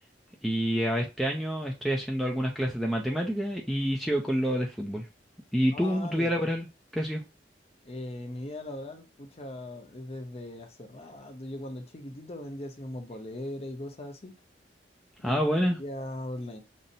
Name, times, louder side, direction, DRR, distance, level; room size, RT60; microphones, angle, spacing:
voice 1, 0.4-5.0 5.5-6.7 6.9-7.2 15.2-15.8, equal, ahead, 0 dB, 0.4 m, -28 dB
voice 2, 5.7-6.4 7.8-14.3 15.2-15.4 15.8-16.6, left 1 dB, 35° left, 5 dB, 0.7 m, -39 dB
5.3 x 2.0 x 2.6 m, 0.27 s
head